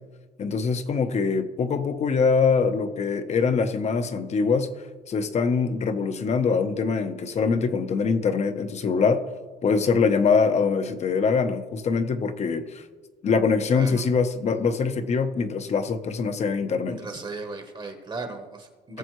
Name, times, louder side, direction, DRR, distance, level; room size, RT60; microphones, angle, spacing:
voice 1, 0.4-4.7 5.1-9.2 9.6-12.8 13.2-17.0 18.9-19.0, left 5 dB, 40° left, 9 dB, 0.9 m, -23 dB
voice 2, 13.7-14.1 16.9-19.0, right 3 dB, 30° right, 6 dB, 1.1 m, -36 dB
18.5 x 7.0 x 3.1 m, 1.3 s
cardioid pair, 110°, 17 cm